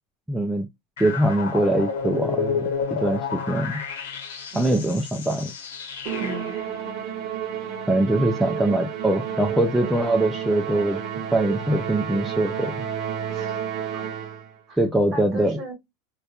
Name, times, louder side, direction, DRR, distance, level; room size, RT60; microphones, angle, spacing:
voice 1, 0.3-0.7 1.0-3.8 4.5-5.5 7.9-11.0 11.3-12.7 14.8-15.6, right 1 dB, ahead, 0.3 m, -23 dB
sound 1, 1.0-6.7, left 6 dB, 85° left, 0.9 m, -30 dB
voice 2, 4.5-4.9 6.2-6.5 13.3-14.0 14.7-14.8 15.1-15.7, right 1 dB, 25° right, 1.3 m, -37 dB
Musical instrument, 6.1-14.5, right 8 dB, 45° right, 0.7 m, -31 dB
2.8 x 2.2 x 2.3 m
supercardioid pair, 145°, 0 cm